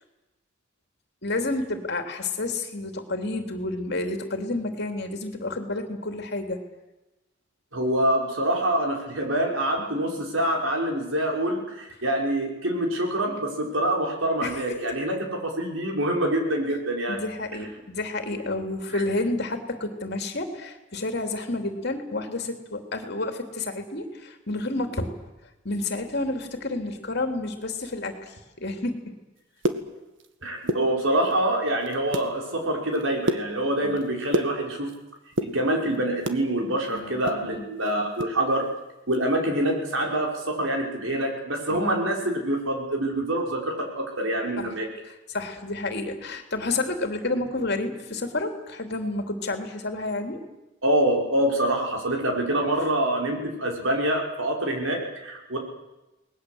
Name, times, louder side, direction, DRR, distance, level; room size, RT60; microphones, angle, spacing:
voice 1, 1.2-6.6 9.8-9.9 14.4-14.6 17.1-25.1 25.6-29.0 33.8-34.0 36.9-37.6 41.7-41.8 44.6-44.7 45.0-50.4, left 2 dB, 55° left, 5 dB, 3.1 m, -30 dB
voice 2, 7.7-17.2 18.9-19.0 30.4-34.9 35.4-38.7 39.1-44.9 50.8-55.6, right 1 dB, 80° right, 1 dB, 5.5 m, -26 dB
sound 1, 29.4-30.3 30.6-31.4 31.8-32.3 32.7-35.0 35.3-36.4 36.8-38.4 38.6-38.7 39.1-39.3 39.7-39.9, right 1 dB, 65° right, 1.8 m, -30 dB
28.5 x 20.0 x 8.0 m, 1.0 s
head